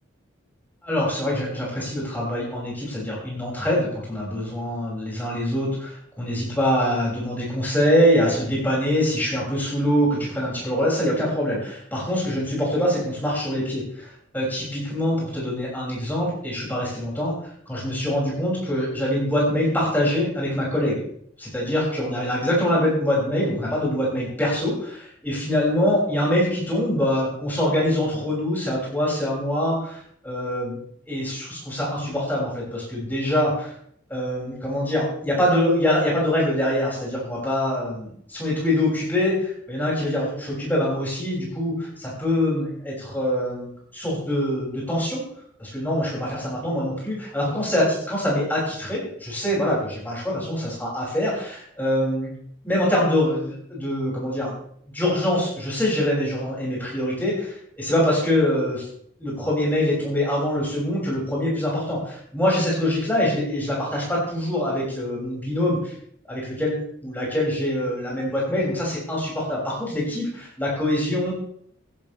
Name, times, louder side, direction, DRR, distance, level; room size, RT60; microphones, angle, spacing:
voice 1, 0.8-17.3 17.7-21.0 21.4-30.8 31.1-33.7 34.1-45.2 45.6-52.3 52.6-54.5 54.9-58.9 59.2-65.9 66.3-71.3, left 1 dB, 10° left, -5 dB, 6.1 m, -24 dB
15.5 x 13.0 x 3.3 m, 0.66 s
head